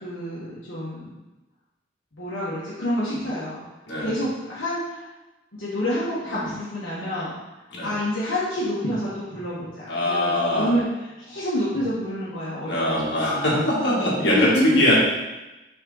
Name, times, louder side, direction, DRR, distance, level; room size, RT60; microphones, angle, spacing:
voice 1, 0.0-1.1 2.1-3.6 4.0-5.1 5.6-7.3 7.8-13.5 14.3-14.6, left 1 dB, 85° left, -9 dB, 1.6 m, -28 dB
voice 2, 9.9-10.7 12.6-14.9, left 1 dB, 65° left, -6 dB, 2.2 m, -22 dB
6.5 x 4.2 x 4.0 m, 1.0 s
head